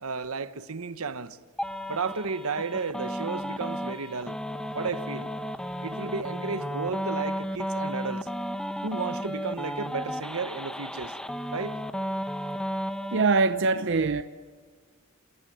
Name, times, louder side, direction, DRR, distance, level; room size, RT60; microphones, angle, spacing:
voice 1, 0.0-1.4 1.9-4.4 4.7-5.3 5.8-8.3 8.8-11.2 11.5-11.8, right 4 dB, 75° right, 1.0 m, -33 dB
sound 1, 1.6-13.2, equal, 5° left, 1.0 m, -33 dB
voice 2, 13.1-14.2, right 4 dB, 55° right, 0.7 m, -23 dB
28.5 x 20.0 x 9.2 m
head